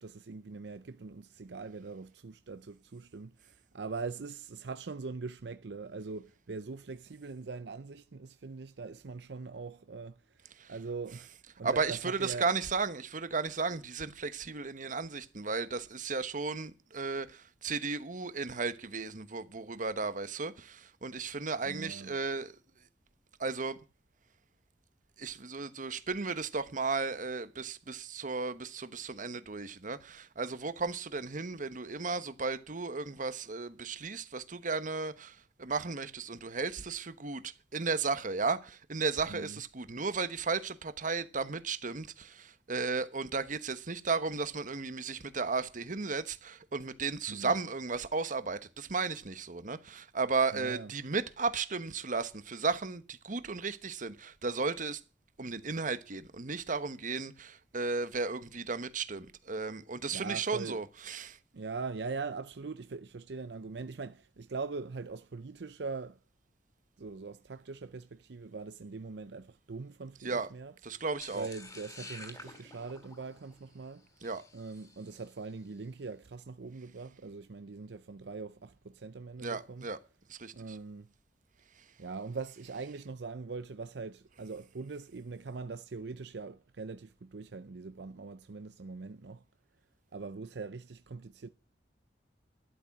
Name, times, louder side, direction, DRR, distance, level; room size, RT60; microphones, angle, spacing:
voice 1, 0.0-11.3 11.6-12.5 21.6-22.1 39.3-39.6 47.3-47.6 50.5-50.9 60.1-60.8 61.5-66.2 67.0-70.7 71.3-74.1 74.5-79.9 80.5-81.1 82.0-89.4 90.1-91.5, right 4 dB, 70° right, 0.6 m, -42 dB
voice 2, 11.6-22.6 23.4-23.8 25.2-55.0 55.4-61.4 70.2-70.5 70.8-71.5 74.2-74.4 79.4-80.0 80.3-80.8, right 4 dB, 50° right, 1.2 m, -34 dB
sound 1, 71.2-75.5, left 2 dB, 20° left, 3.1 m, -50 dB
12.5 x 11.0 x 6.0 m
head